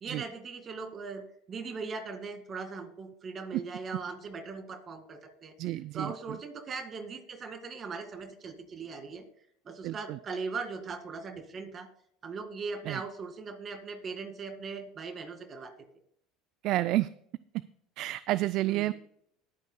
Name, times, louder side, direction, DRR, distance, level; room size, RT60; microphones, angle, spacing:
voice 1, 0.0-9.2 9.7-11.9 12.2-15.7 18.7-18.9, right 4 dB, 35° right, 6 dB, 2.1 m, -39 dB
voice 2, 5.6-6.1 9.8-10.2 12.9-13.0 16.6-17.1 18.0-18.9, right 16 dB, 60° right, 16 dB, 0.3 m, -29 dB
20.0 x 8.7 x 2.2 m, 0.70 s
supercardioid pair, 95°, 0 cm